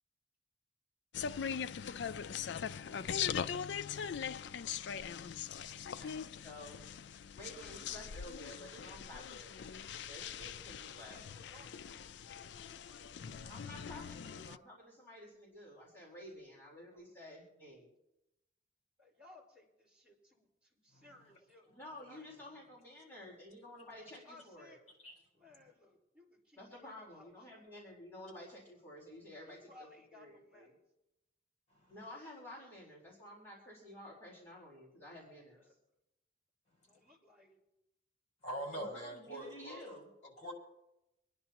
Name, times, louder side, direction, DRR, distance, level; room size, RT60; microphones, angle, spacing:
sound 1, 1.1-14.6, left 7 dB, 65° left, 0.4 m, -41 dB
voice 1, 5.9-6.8 7.3-11.2 13.4-17.9 21.7-24.8 26.6-30.7 31.9-35.8 38.8-40.1, left 1 dB, 15° left, 4.1 m, -52 dB
voice 2, 11.0-13.5 16.9-17.1 19.0-21.7 22.1-22.3 22.5-22.6 24.2-24.8 25.3-27.7 29.5-30.7 35.7-35.8 36.9-37.6, left 2 dB, 5° right, 4.5 m, -61 dB
voice 3, 38.4-39.9 40.4-40.5, right 1 dB, 40° left, 5.0 m, -43 dB
27.0 x 10.5 x 2.9 m
head